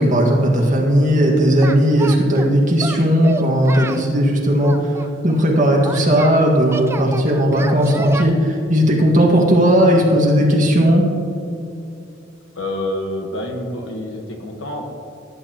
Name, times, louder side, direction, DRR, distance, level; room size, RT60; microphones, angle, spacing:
voice 1, 0.0-4.9 5.2-11.0, equal, 40° right, -2 dB, 1.9 m, -16 dB
Singing, 1.6-2.5 2.8-4.1 4.6-6.3 6.7-8.2, right 2 dB, 15° right, 0.3 m, -29 dB
voice 2, 12.5-14.8, left 1 dB, 80° left, 2 dB, 1.5 m, -27 dB
17.0 x 9.3 x 3.0 m, 2.6 s
head